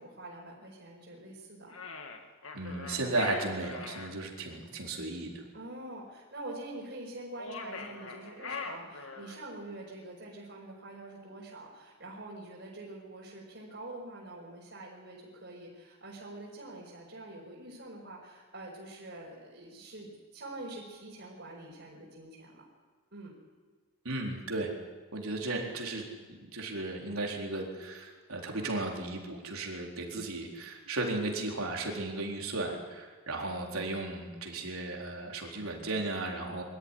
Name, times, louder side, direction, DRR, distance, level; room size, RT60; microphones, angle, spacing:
voice 1, 0.0-1.8 5.5-22.6 23.1-23.3, right 2 dB, 55° right, -6 dB, 4.9 m, -45 dB
sound 1, 1.7-4.1 7.3-9.5, left 4 dB, 70° left, 2.1 m, -41 dB
voice 2, 2.5-5.4 24.0-24.7 25.1-26.0 26.4-36.6, right 2 dB, 85° right, 0 dB, 4.0 m, -35 dB
23.0 x 13.5 x 10.0 m, 1.5 s
head